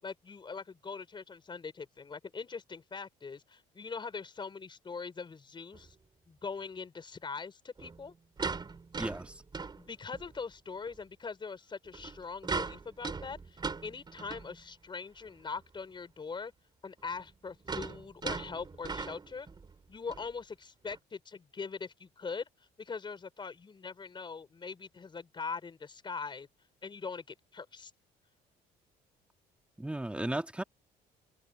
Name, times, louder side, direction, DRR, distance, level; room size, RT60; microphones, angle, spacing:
voice 1, 0.0-6.0 6.3-8.1 9.8-16.5 16.8-19.5 19.9-22.5 22.8-26.5 26.8-27.9, left 5 dB, 30° left, 4.6 m, -42 dB
sound 1, 5.7-5.9 7.8-10.4 10.9-11.0 11.8-14.6 15.3-15.4 15.6-15.7 17.0-19.7 20.1-20.3 20.9-21.0, right 4 dB, 25° right, 3.6 m, -39 dB
voice 2, 9.0-9.4 29.8-30.6, right 1 dB, 5° right, 2.3 m, -35 dB
cardioid pair, 110°, 17 cm